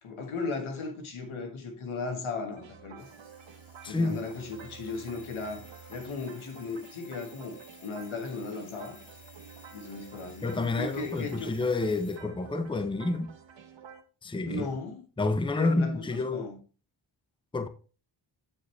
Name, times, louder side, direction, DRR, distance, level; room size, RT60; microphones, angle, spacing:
voice 1, 0.0-3.1 3.8-5.6 5.9-9.0 9.7-11.5 14.4-15.0 15.6-16.6, left 3 dB, 90° left, 1.5 m, -36 dB
sound 1, 2.6-14.0, right 6 dB, 70° right, 1.1 m, -50 dB
Alarm, 3.0-12.2, left 3 dB, 30° left, 3.3 m, -55 dB
voice 2, 3.8-4.2 10.4-13.3 14.2-14.7 15.2-16.5 17.5-17.7, left 3 dB, 10° left, 0.7 m, -29 dB
8.7 x 5.0 x 3.2 m
cardioid pair, 65°, 47 cm